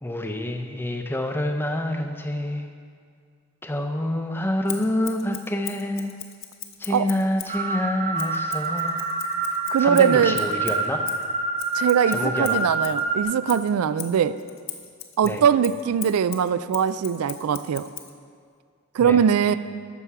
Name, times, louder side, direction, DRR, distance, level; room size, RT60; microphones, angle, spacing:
voice 1, 0.0-2.7 3.6-6.1 6.8-9.1 9.8-11.0 12.1-12.7 15.2-15.4 19.0-19.2 19.5-19.6, left 1 dB, 10° left, 5 dB, 0.5 m, -27 dB
Scissors, 4.7-7.6 8.2-13.0 13.5-18.1, left 11 dB, 60° left, 0.8 m, -39 dB
sound 1, 7.5-13.2, right 3 dB, 30° right, 0.7 m, -27 dB
voice 2, 9.7-10.4 11.7-14.4 15.2-17.9 18.9-19.5, right 7 dB, 80° right, 15 dB, 0.3 m, -21 dB
11.0 x 7.0 x 4.7 m, 2.1 s
head